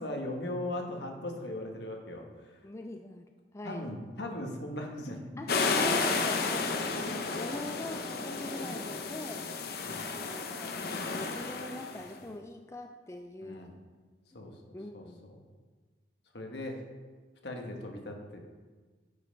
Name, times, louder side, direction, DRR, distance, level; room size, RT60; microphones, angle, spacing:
voice 1, 0.0-2.6 3.6-5.4 9.8-10.1 13.4-13.8 14.3-15.4 16.3-16.8 17.4-18.4, left 1 dB, 75° left, 2 dB, 1.4 m, -39 dB
voice 2, 2.6-3.3 3.5-3.9 5.4-9.5 10.1-13.7 14.7-15.2, left 1 dB, 15° left, 5 dB, 0.4 m, -43 dB
sound 1, 5.5-12.1, left 4 dB, 60° left, 0.7 m, -32 dB
8.1 x 5.4 x 5.3 m, 1.4 s
head